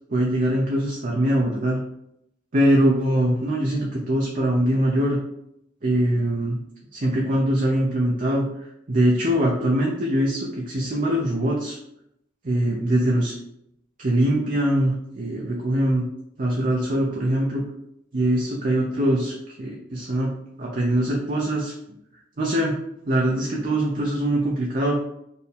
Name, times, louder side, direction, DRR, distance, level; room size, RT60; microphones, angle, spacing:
voice 1, 0.1-1.8 2.5-5.2 5.8-6.6 6.9-8.5 8.9-11.8 12.4-13.3 14.0-16.0 16.4-17.6 18.1-19.3 19.6-20.3 20.6-21.7 22.4-22.8 23.1-25.0, right 1 dB, 45° right, -2 dB, 0.6 m, -22 dB
4.4 x 2.7 x 3.5 m, 0.78 s
head